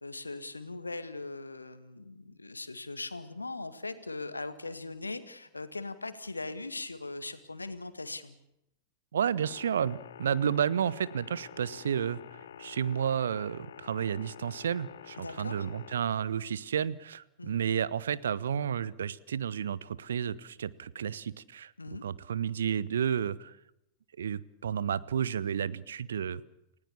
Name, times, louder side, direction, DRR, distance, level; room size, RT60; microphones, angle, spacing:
voice 1, 0.0-8.4 15.2-15.7 17.4-17.6 21.8-22.0, left 3 dB, 80° left, 11 dB, 2.0 m, -40 dB
voice 2, 9.1-12.2 12.6-21.7 22.0-23.5 24.2-26.4, right 8 dB, 65° right, 20 dB, 0.9 m, -31 dB
sound 1, 9.4-16.0, left 9 dB, 65° left, 0.9 m, -48 dB
29.5 x 17.5 x 7.2 m, 0.83 s
figure-of-eight pair, 90°, 0 cm